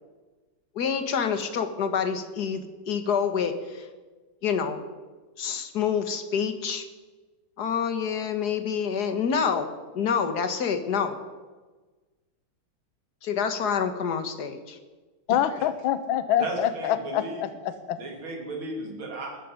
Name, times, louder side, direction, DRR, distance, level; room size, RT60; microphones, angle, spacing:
voice 1, 0.8-3.9 4.4-4.8 5.4-6.8 7.6-11.2 13.2-14.8, left 6 dB, 50° left, 8 dB, 1.9 m, -27 dB
voice 2, 15.3-18.0, left 10 dB, 70° left, 12 dB, 1.6 m, -26 dB
voice 3, 16.4-17.5 18.0-19.4, right 2 dB, 65° right, 1 dB, 3.7 m, -35 dB
19.5 x 14.5 x 5.2 m, 1.3 s
omnidirectional pair, 2.4 m